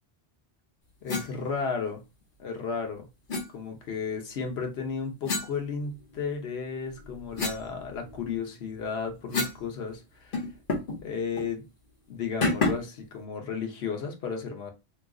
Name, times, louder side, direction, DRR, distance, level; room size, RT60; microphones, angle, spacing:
voice 1, 1.0-2.0 2.4-3.1 3.5-10.4 11.0-11.7 12.1-14.7, left 5 dB, 80° left, 1.1 m, -33 dB
sound 1, 1.1-1.3 3.3-3.5 5.2-6.3 6.8-9.7 9.9-10.0 10.3-11.0 11.3-11.5 12.4-13.0, left 3 dB, 55° left, 1.1 m, -31 dB
3.0 x 2.3 x 3.6 m
omnidirectional pair, 1.1 m